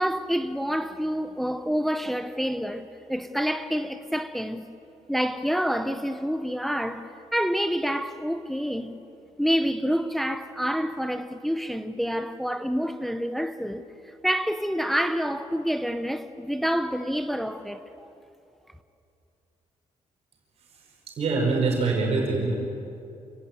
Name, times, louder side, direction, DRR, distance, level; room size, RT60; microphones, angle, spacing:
voice 1, 0.0-4.6 5.1-8.9 9.4-13.8 14.2-18.1, equal, ahead, 0.7 m, -28 dB
voice 2, 21.2-22.6, right 3 dB, 55° right, 5.4 m, -24 dB
28.5 x 18.0 x 9.2 m
wide cardioid pair, 180°, 13 cm